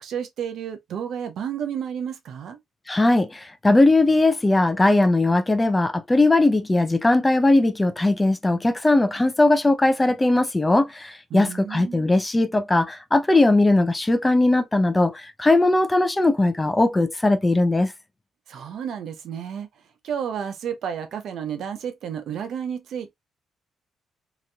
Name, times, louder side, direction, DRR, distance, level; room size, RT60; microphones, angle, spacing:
voice 1, 0.0-2.6 11.3-12.1 18.5-19.7 20.0-23.1, right 8 dB, 70° right, 0.6 m, -31 dB
voice 2, 2.9-17.9, left 2 dB, 15° left, 0.5 m, -19 dB
2.9 x 2.6 x 2.3 m
cardioid pair, 90°, 0 cm